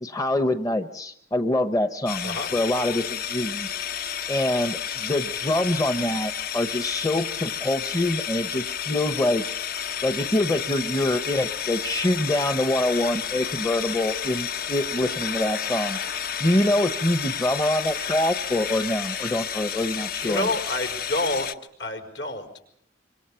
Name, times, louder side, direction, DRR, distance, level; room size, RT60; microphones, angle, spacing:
voice 1, 0.0-3.7 4.3-9.4 10.0-16.0 16.4-20.5, left 1 dB, 20° left, 9 dB, 0.9 m, -25 dB
sound 1, 2.1-21.5, left 8 dB, 50° left, 1.0 m, -31 dB
voice 2, 20.2-21.5 21.8-22.6, left 2 dB, 75° left, 5 dB, 5.2 m, -28 dB
26.0 x 25.0 x 5.7 m, 0.71 s
head